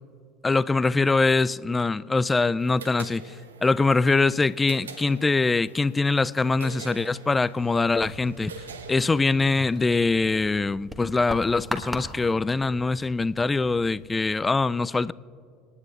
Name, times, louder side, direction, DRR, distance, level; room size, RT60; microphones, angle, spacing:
voice 1, 0.4-15.1, left 3 dB, 20° left, 0.3 m, -23 dB
sound 1, 2.6-10.0, right 5 dB, 85° right, 0.7 m, -44 dB
sound 2, 7.9-14.5, equal, ahead, 1.3 m, -40 dB
27.0 x 9.8 x 2.4 m
hypercardioid pair, 70°, 0 cm